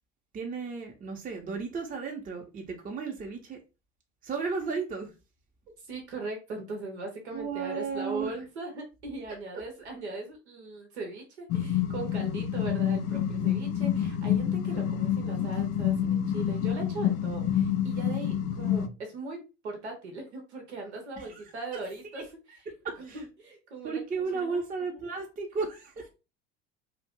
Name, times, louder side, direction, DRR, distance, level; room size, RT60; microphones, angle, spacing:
voice 1, 0.3-3.6 4.2-5.1 7.3-8.4 9.3-9.4 21.2-21.4 21.7-21.8 22.1-22.2 22.5-23.2 23.8-26.1, right 5 dB, 25° right, 0.7 m, -34 dB
voice 2, 5.9-22.2 23.0-24.0 24.3-24.7, right 3 dB, 90° right, 0.8 m, -39 dB
sound 1, 11.5-18.9, left 9 dB, 50° left, 0.4 m, -28 dB
2.5 x 2.0 x 3.5 m
hypercardioid pair, 70°, 32 cm